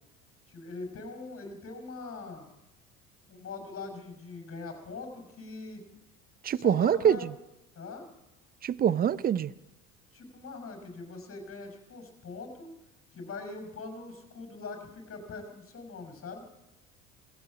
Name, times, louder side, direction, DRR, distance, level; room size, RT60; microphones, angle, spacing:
voice 1, 0.5-2.5 3.3-5.8 6.5-7.2 7.7-8.1 10.1-12.7 13.1-16.4, left 3 dB, 30° left, 5.1 m, -42 dB
voice 2, 6.4-7.2 8.6-9.5, right 9 dB, 20° right, 0.5 m, -24 dB
17.5 x 16.0 x 5.1 m
hypercardioid pair, 70°, 43 cm